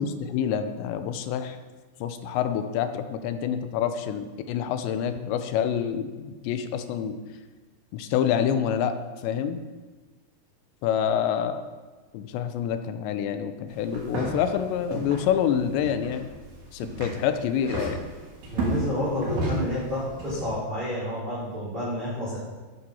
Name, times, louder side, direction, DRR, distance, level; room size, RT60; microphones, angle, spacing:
voice 1, 0.0-1.6 2.0-7.2 7.9-9.0 9.2-9.6 10.8-11.6 12.1-16.3 16.7-18.0, left 8 dB, 85° left, 8 dB, 3.1 m, -27 dB
sound 1, 13.7-20.4, right 1 dB, 65° right, 4.8 m, -33 dB
voice 2, 18.5-22.4, equal, 10° right, -12 dB, 4.2 m, -30 dB
11.5 x 9.0 x 5.6 m, 1.3 s
omnidirectional pair, 5.0 m